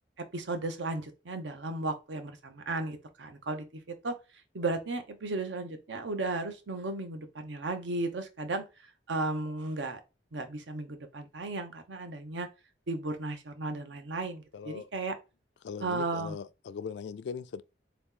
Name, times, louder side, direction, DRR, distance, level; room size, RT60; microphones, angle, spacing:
voice 1, 0.3-4.2 4.5-10.0 10.3-12.5 12.9-15.1 15.8-16.4, right 2 dB, 85° right, 0.7 m, -35 dB
voice 2, 14.5-14.9 15.6-17.6, left 6 dB, 70° left, 0.3 m, -40 dB
3.8 x 2.9 x 3.6 m
head